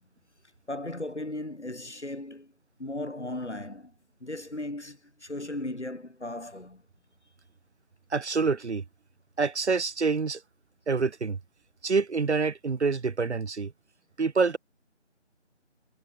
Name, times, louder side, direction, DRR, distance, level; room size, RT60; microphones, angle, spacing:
voice 1, 0.7-2.5 2.8-3.9 4.2-6.8, left 1 dB, 65° left, 5.0 m, -36 dB
voice 2, 8.1-8.8 9.4-10.4 10.9-11.4 11.8-13.7 14.2-14.6, right 4 dB, 65° right, 0.6 m, -26 dB
figure-of-eight pair, 165°, 37 cm